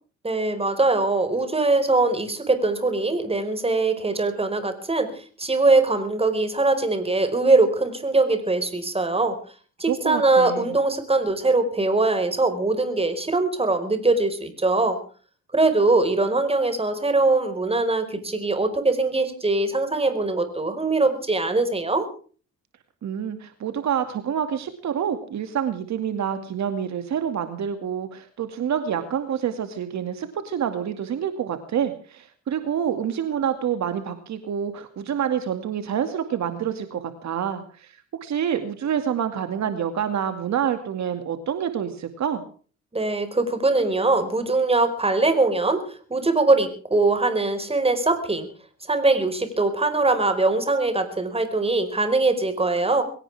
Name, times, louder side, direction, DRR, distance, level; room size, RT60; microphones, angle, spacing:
voice 1, 0.2-9.4 9.8-15.0 15.5-22.1 42.9-48.5 48.9-53.0, right 3 dB, 20° right, 9 dB, 4.9 m, -22 dB
voice 2, 9.9-10.7 23.0-42.4, right 8 dB, 65° right, 8 dB, 2.4 m, -27 dB
22.5 x 17.5 x 3.5 m, 0.41 s
cardioid pair, 90°, 30 cm